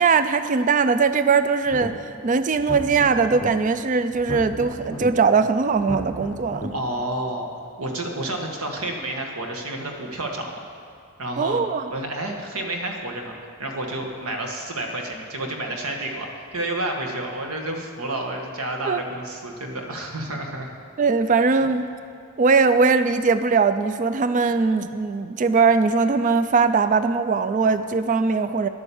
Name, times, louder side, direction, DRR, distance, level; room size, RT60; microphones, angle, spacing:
voice 1, 0.0-1.9 2.2-6.7 11.4-11.9 18.9-19.0 21.0-21.9 22.4-28.7, right 4 dB, 35° right, 11 dB, 0.3 m, -20 dB
sound 1, 1.6-2.2 2.5-3.5 4.1-5.1 5.7-6.7, left 1 dB, 20° left, 1.0 m, -34 dB
voice 2, 6.7-7.5 7.8-10.6 11.2-11.6 11.9-13.3 13.6-20.7, right 1 dB, 75° right, 2 dB, 1.6 m, -30 dB
11.0 x 9.1 x 7.0 m, 2.3 s
head